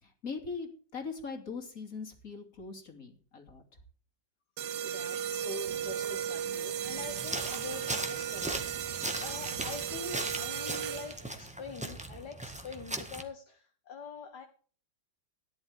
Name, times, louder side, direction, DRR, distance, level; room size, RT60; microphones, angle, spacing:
voice 1, 0.0-3.6, left 4 dB, 50° left, 3 dB, 3.4 m, -41 dB
sound 1, 4.6-11.3, right 9 dB, 70° right, 1.4 m, -36 dB
voice 2, 4.8-8.6 8.8-14.5, left 5 dB, 65° left, 4 dB, 2.1 m, -44 dB
sound 2, 7.0-13.2, right 1 dB, 5° right, 1.5 m, -39 dB
17.5 x 11.5 x 3.6 m, 0.41 s
omnidirectional pair, 1.9 m